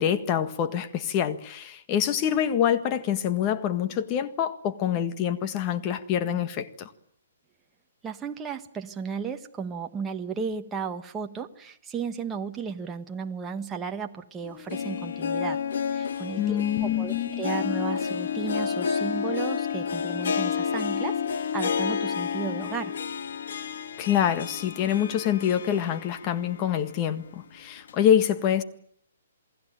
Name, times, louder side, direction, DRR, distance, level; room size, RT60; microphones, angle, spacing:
voice 1, 0.0-6.9 16.4-17.4 24.0-28.6, left 9 dB, 30° left, 1.6 m, -26 dB
voice 2, 8.0-15.6 15.9-23.0, right 6 dB, 15° right, 1.4 m, -34 dB
Harp, 14.4-26.6 26.9-27.0 27.9-28.0, left 7 dB, 65° left, 2.2 m, -30 dB
28.5 x 20.0 x 9.1 m
hypercardioid pair, 155°, 0 cm